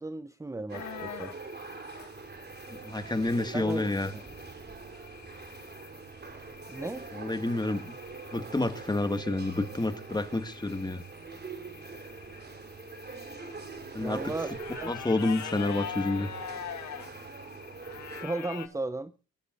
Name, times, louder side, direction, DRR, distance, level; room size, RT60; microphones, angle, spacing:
voice 1, 0.0-1.3 3.5-4.2 6.7-7.1 14.0-14.9 18.2-19.1, right 2 dB, 10° right, 0.8 m, -36 dB
sound 1, 0.7-18.7, left 9 dB, 70° left, 2.1 m, -45 dB
sound 2, 0.7-18.3, right 4 dB, 35° right, 4.0 m, -44 dB
voice 2, 2.8-4.1 7.1-7.9 8.3-11.0 13.9-14.3 14.9-16.3, left 2 dB, 15° left, 2.0 m, -29 dB
25.0 x 13.5 x 2.6 m
cardioid pair, 90°, 30 cm